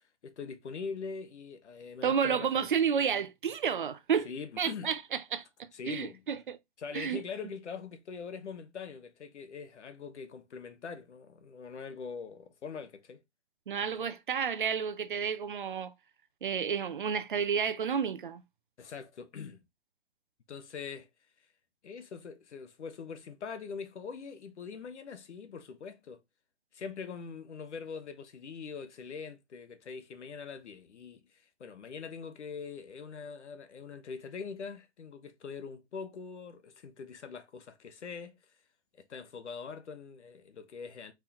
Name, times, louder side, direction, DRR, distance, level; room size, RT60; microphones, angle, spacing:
voice 1, 0.0-2.7 4.2-4.9 5.7-6.2 6.8-13.2 18.8-19.6 20.5-21.1 21.8-26.2 26.7-38.4 39.0-41.1, left 5 dB, 85° left, 1.2 m, -43 dB
voice 2, 2.0-4.3 4.6-5.4 5.9-6.6 6.9-7.2 13.7-15.9 16.4-18.4, right 7 dB, 50° right, 0.6 m, -31 dB
4.7 x 3.8 x 2.8 m
hypercardioid pair, 175°, 34 cm